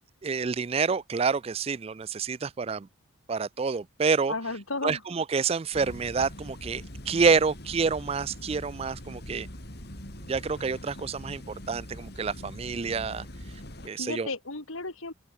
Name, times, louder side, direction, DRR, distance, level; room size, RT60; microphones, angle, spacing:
voice 1, 0.2-2.9 3.3-4.3 4.8-9.5 10.3-13.3 13.8-14.3, right 5 dB, 30° right, 0.3 m, -28 dB
voice 2, 4.3-5.0 14.0-15.1, left 3 dB, 85° left, 3.6 m, -34 dB
sound 1, 5.7-13.9, left 1 dB, 50° left, 5.3 m, -42 dB
open air
head